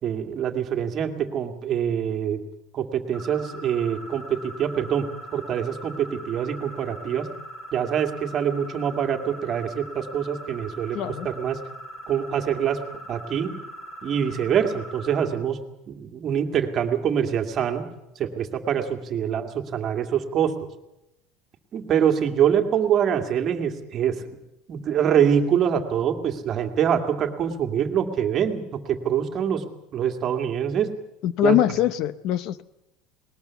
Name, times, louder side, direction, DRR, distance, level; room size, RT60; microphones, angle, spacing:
voice 1, 0.0-2.4 2.7-5.1 5.3-7.3 7.7-11.0 11.2-11.6 12.1-12.8 13.1-13.5 14.0-15.6 15.9-17.8 18.2-20.5 21.7-24.4 24.7-29.6 29.9-30.9 31.4-31.6, right 8 dB, 30° right, 5 dB, 2.1 m, -24 dB
sound 1, 3.1-15.3, right 1 dB, 25° left, 5.0 m, -41 dB
voice 2, 10.9-11.3 31.2-32.6, left 12 dB, 50° left, 16 dB, 0.7 m, -23 dB
20.0 x 19.5 x 7.1 m, 0.86 s
cardioid pair, 165°, 0 cm